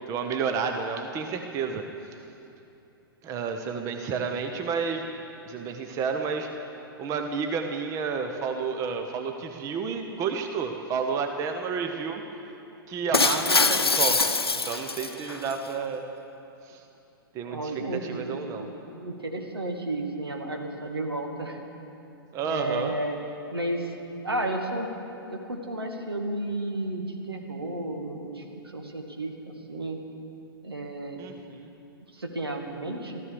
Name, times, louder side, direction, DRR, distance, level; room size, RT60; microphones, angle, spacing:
voice 1, 0.1-1.8 3.2-5.0 5.5-6.5 7.0-12.2 12.9-14.2 14.6-16.0 16.7-16.8 17.3-18.7 22.3-22.9 31.2-31.7, right 5 dB, 25° right, 5 dB, 1.0 m, -30 dB
Shatter, 13.1-15.5, left 3 dB, 85° left, 0.8 m, -24 dB
voice 2, 17.5-21.6 22.4-23.2 23.5-23.9 24.2-24.9 25.3-30.0 30.6-31.2 32.1-33.2, right 1 dB, 80° right, 3 dB, 2.1 m, -33 dB
14.0 x 14.0 x 7.0 m, 2.9 s
figure-of-eight pair, 110°, 13 cm